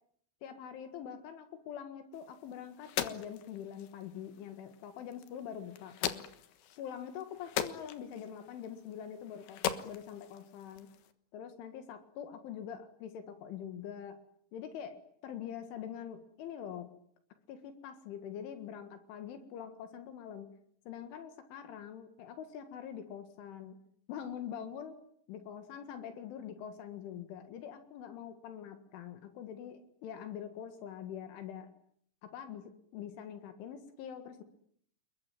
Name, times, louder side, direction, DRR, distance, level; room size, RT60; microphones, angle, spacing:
voice 1, 0.4-6.3 6.8-10.9 11.3-14.2 14.5-16.9 17.5-20.6 20.9-23.8 24.1-25.0 25.3-31.7 32.2-34.4, left 9 dB, 80° left, 8 dB, 4.3 m, -44 dB
sound 1, 2.1-11.1, left 10 dB, 65° left, 3.0 m, -41 dB
29.5 x 22.0 x 9.2 m, 0.67 s
omnidirectional pair, 5.5 m